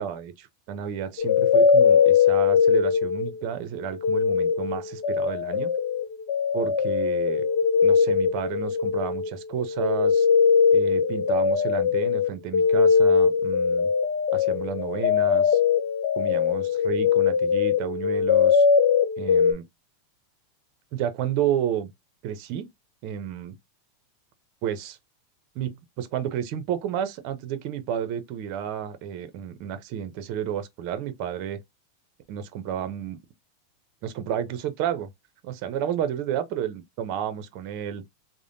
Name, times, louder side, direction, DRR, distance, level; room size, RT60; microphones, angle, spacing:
voice 1, 0.0-5.7 6.5-7.4 7.8-10.3 10.7-13.9 14.3-15.6 16.2-18.7 19.2-19.6 20.9-21.9 22.2-22.7 23.0-23.6 24.6-25.0 25.5-31.6 32.3-33.2 34.0-35.1 35.4-38.0, right 9 dB, 55° right, 0.7 m, -31 dB
sound 1, 1.2-3.5 3.8-19.5, left 6 dB, 70° left, 0.6 m, -21 dB
3.3 x 2.1 x 2.6 m
supercardioid pair, 125°, 0 cm